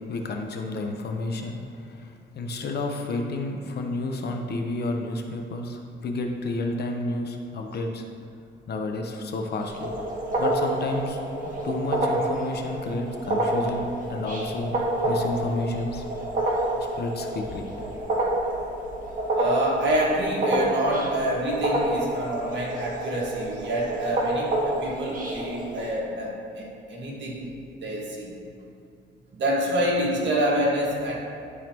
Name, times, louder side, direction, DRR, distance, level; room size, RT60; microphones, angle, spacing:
voice 1, 0.1-8.0 8.7-9.9 10.4-11.2 11.6-14.8 15.0-16.0 16.8-17.7 18.6-18.7, left 2 dB, 55° left, 3 dB, 0.8 m, -31 dB
sound 1, 9.6-25.9, right 1 dB, 45° right, 1.6 m, -28 dB
voice 2, 19.3-27.5 27.8-28.3 29.3-31.1, right 1 dB, 65° right, -3 dB, 1.7 m, -27 dB
12.0 x 4.1 x 2.9 m, 2.5 s
cardioid pair, 90°, 20 cm